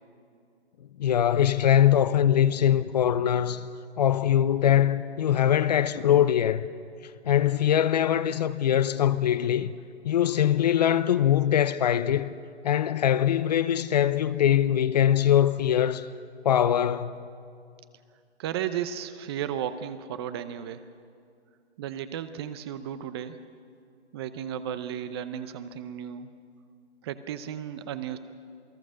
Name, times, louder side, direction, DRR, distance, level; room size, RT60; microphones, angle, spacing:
voice 1, 1.0-3.7 4.0-6.7 7.3-9.7 10.0-12.3 12.6-16.1 16.4-17.3, left 10 dB, 40° left, 0.7 m, -22 dB
voice 2, 18.4-20.8 21.8-23.4 24.1-26.3 27.0-28.2, right 9 dB, 25° right, 0.7 m, -34 dB
28.0 x 19.0 x 6.4 m
hypercardioid pair, 140°, 34 cm